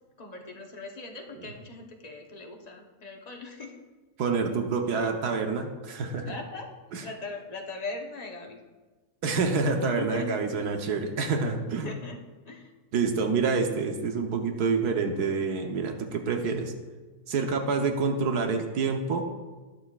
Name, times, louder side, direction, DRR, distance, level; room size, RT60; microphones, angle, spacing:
voice 1, 0.2-3.7 6.3-8.6 9.9-10.3 10.6-10.7 11.8-12.2 12.4-12.7, left 3 dB, 30° left, 2 dB, 0.9 m, -40 dB
voice 2, 4.2-6.3 6.9-7.0 9.2-12.0 12.9-16.7 17.3-19.3, right 4 dB, 80° right, 4 dB, 1.5 m, -27 dB
19.5 x 6.6 x 2.4 m, 1.3 s
omnidirectional pair, 1.7 m